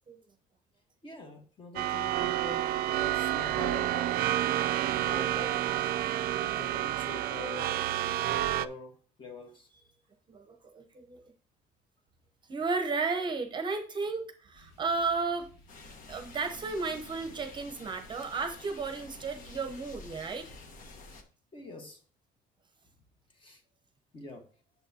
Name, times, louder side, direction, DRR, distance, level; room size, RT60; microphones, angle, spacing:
voice 1, 1.0-4.2 4.9-5.7 6.3-9.7 21.5-22.0 23.3-23.6 24.1-24.4, left 2 dB, 30° left, 1.4 m, -44 dB
sound 1, 1.8-8.7, right 13 dB, 65° right, 0.4 m, -29 dB
voice 2, 4.5-5.0 6.3-6.5 8.1-8.3 10.3-11.3 12.5-15.5 16.1-20.5, right 4 dB, 25° right, 0.8 m, -34 dB
sound 2, 14.5-20.3, equal, 85° left, 2.6 m, -59 dB
sound 3, 15.7-21.2, left 3 dB, 55° left, 1.2 m, -50 dB
8.7 x 7.0 x 2.8 m
cardioid pair, 160°, 17 cm